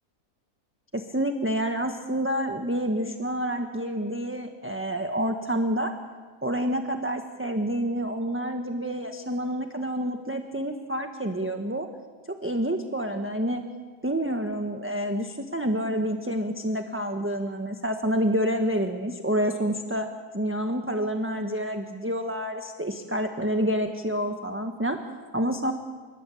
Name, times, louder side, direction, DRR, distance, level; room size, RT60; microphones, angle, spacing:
voice 1, 0.9-5.9 6.4-11.9 12.3-13.6 14.0-25.0 25.3-25.7, equal, 10° right, 4 dB, 1.3 m, -28 dB
29.0 x 20.0 x 8.5 m, 1.5 s
omnidirectional pair, 1.8 m